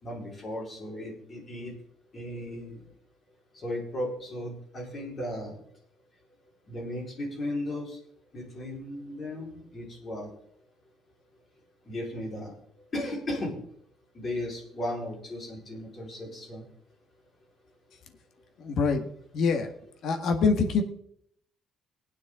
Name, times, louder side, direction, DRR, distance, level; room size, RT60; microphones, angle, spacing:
voice 1, 0.0-1.7 2.1-2.8 3.5-5.6 6.7-8.0 8.3-10.3 11.9-12.6 12.9-13.5 14.1-16.6, left 1 dB, 25° left, -2 dB, 4.1 m, -35 dB
voice 2, 18.6-19.1 19.3-19.7 20.0-20.8, left 4 dB, 55° left, 6 dB, 1.5 m, -24 dB
18.5 x 9.5 x 3.7 m, 0.69 s
cardioid pair, 165°, 0 cm